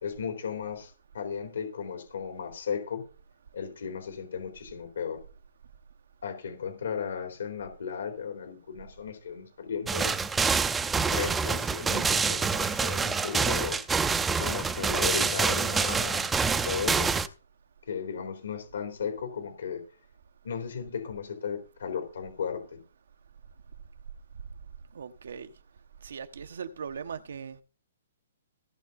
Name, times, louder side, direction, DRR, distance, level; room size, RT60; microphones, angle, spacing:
voice 1, 0.0-3.1 3.5-5.2 6.2-10.2 11.1-13.8 14.4-17.1 17.9-19.8 20.4-22.8, left 7 dB, 85° left, 3.8 m, -35 dB
sound 1, 9.9-17.3, right 5 dB, 10° right, 0.6 m, -26 dB
voice 2, 24.9-25.5 26.0-27.6, right 6 dB, 80° right, 1.3 m, -39 dB
17.5 x 6.6 x 4.3 m
hypercardioid pair, 165°, 0 cm